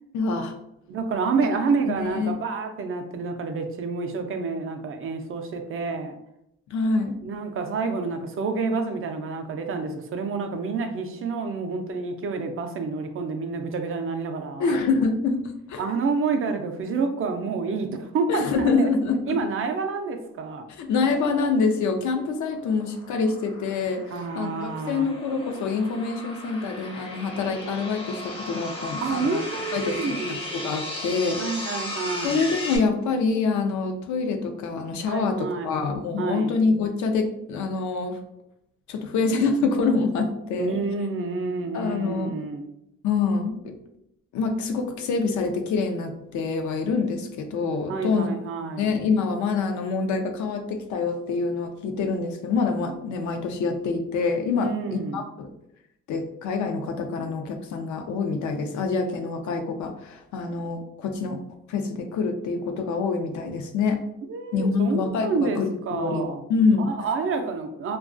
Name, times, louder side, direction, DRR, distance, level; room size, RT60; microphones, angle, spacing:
voice 1, 0.1-0.6 1.9-2.4 6.7-7.1 14.6-15.8 18.3-19.4 20.8-24.0 24.3-29.4 29.7-31.7 32.2-38.2 38.9-40.8 41.7-42.3 43.0-43.7 44.3-48.3 48.8-55.5 56.1-61.4 61.7-64.0 64.5-66.2 66.5-66.9, left 4 dB, 70° left, 5 dB, 0.5 m, -26 dB
voice 2, 0.9-6.2 7.2-14.8 15.8-18.9 19.3-20.7 24.1-25.1 29.0-30.4 31.4-32.5 35.1-35.7 36.2-36.5 40.6-42.7 47.9-48.9 54.6-55.2 64.3-66.4 66.9-68.0, right 4 dB, 45° right, 6 dB, 0.4 m, -28 dB
sound 1, 21.9-32.8, left 1 dB, 20° left, 0.5 m, -36 dB
2.3 x 2.2 x 2.4 m, 0.79 s
cardioid pair, 90°, 30 cm